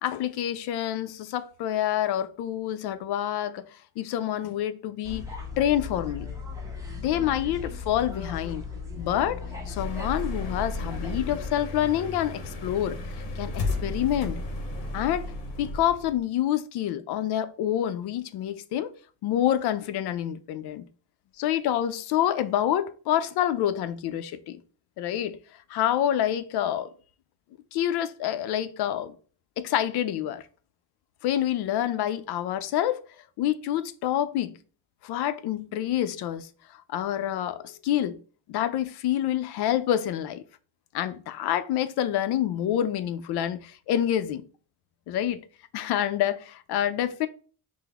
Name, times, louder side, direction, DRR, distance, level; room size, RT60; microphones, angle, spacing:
voice 1, 0.0-3.7 4.0-5.2 5.6-6.3 7.0-8.6 9.0-13.0 13.4-14.4 14.9-15.3 15.6-18.9 19.2-20.8 21.4-24.6 25.0-25.4 25.7-26.9 27.7-29.2 29.6-30.4 31.2-33.0 33.4-34.6 35.0-36.5 36.9-38.2 38.5-40.4 40.9-44.5 45.1-45.4 45.7-47.3, left 11 dB, 80° left, 0.6 m, -27 dB
sound 1, 5.0-11.5, left 5 dB, 10° right, 0.7 m, -37 dB
sound 2, 9.8-16.2, left 2 dB, 55° left, 1.0 m, -34 dB
5.7 x 2.1 x 3.5 m
cardioid pair, 175°, 39 cm